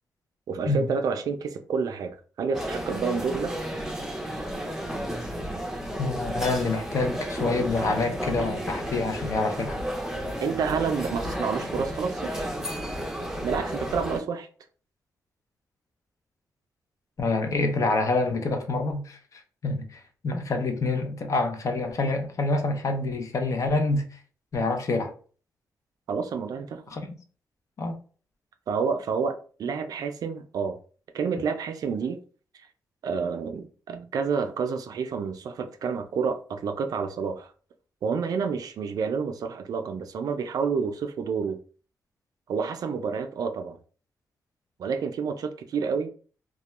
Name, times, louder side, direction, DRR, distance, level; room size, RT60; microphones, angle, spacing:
voice 1, 0.5-3.5 10.4-12.4 13.4-14.5 26.1-26.8 28.7-30.8 31.1-32.2 33.0-37.5 38.0-41.6 42.5-43.8 44.8-46.1, right 5 dB, 70° right, 0.4 m, -29 dB
sound 1, 2.5-14.2, equal, 5° right, 0.6 m, -32 dB
voice 2, 6.0-9.8 17.2-24.0 24.5-25.1 26.9-27.0 27.8-28.0, left 3 dB, 55° left, 0.6 m, -27 dB
2.3 x 2.1 x 2.9 m
cardioid pair, 80°, 7 cm